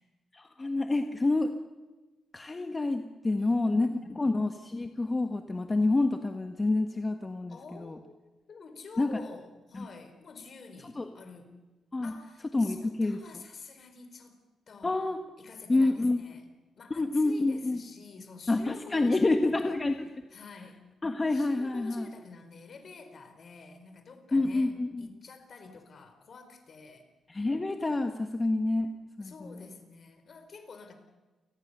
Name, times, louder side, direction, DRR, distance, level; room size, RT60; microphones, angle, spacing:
voice 1, 0.3-1.5 2.3-7.9 9.0-9.1 9.7-9.9 11.0-11.1 11.9-12.1 12.5-13.2 14.8-15.2 15.7-16.2 16.9-17.8 18.5-20.1 21.0-22.1 24.3-25.1 27.3-28.9 29.2-29.5, left 2 dB, 20° left, 6 dB, 1.5 m, -28 dB
voice 2, 3.4-4.2 7.5-8.2 8.5-11.6 12.0-14.3 14.7-15.0 15.4-16.5 16.8-19.8 20.3-20.8 21.3-27.1 29.2-30.9, left 4 dB, 50° left, 8 dB, 4.5 m, -48 dB
29.0 x 20.0 x 6.8 m, 1.2 s
cardioid pair, 110°, 0 cm